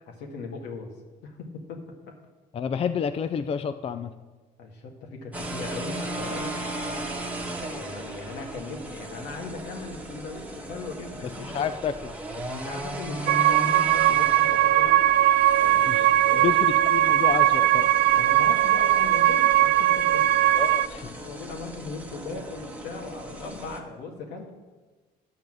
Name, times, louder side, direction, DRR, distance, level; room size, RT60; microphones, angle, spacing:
voice 1, 0.1-0.9 1.2-2.1 4.6-6.6 7.4-11.7 12.4-14.9 15.6-16.6 18.1-20.3 21.1-24.5, left 4 dB, 80° left, 2 dB, 1.9 m, -38 dB
voice 2, 2.5-4.1 11.4-12.1 15.9-16.1 16.3-17.9 20.6-21.1, left 7 dB, 35° left, 10 dB, 0.5 m, -29 dB
sound 1, 5.3-23.8, right 1 dB, 10° right, 1.4 m, -37 dB
sound 2, 13.3-20.9, right 13 dB, 70° right, 0.4 m, -20 dB
10.5 x 5.7 x 7.7 m, 1.3 s
cardioid pair, 110°, 17 cm